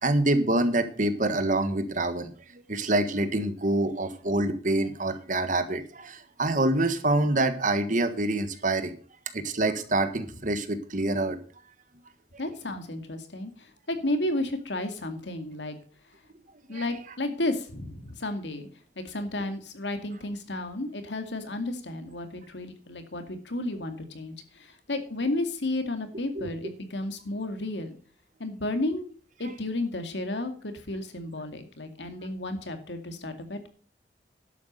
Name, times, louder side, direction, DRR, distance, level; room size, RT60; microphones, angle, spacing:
voice 1, 0.0-8.9 9.3-11.4 16.7-16.9 26.3-26.5, right 2 dB, 50° right, 10 dB, 1.5 m, -26 dB
voice 2, 12.4-15.7 16.7-18.7 19.0-28.0 28.4-29.1 29.4-33.7, left 2 dB, 85° left, 7 dB, 2.3 m, -32 dB
11.5 x 8.4 x 6.8 m, 0.43 s
head